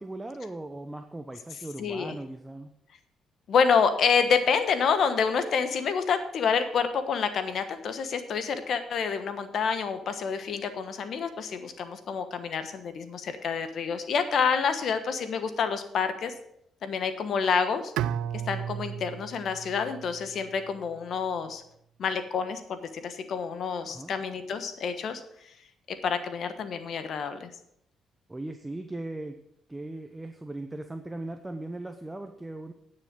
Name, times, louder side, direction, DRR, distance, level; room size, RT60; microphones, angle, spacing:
voice 1, 0.0-2.7 23.9-24.1 28.3-29.4 29.7-32.7, right 2 dB, 10° right, 6 dB, 0.8 m, -38 dB
voice 2, 1.8-2.1 3.5-16.3 16.8-17.9 18.5-21.6 22.0-25.5 25.9-27.5, left 6 dB, 60° left, 10 dB, 1.2 m, -28 dB
Bowed string instrument, 18.0-21.0, right 9 dB, 90° right, 0.4 m, -34 dB
9.9 x 6.5 x 6.2 m, 0.74 s
cardioid pair, 90°, 0 cm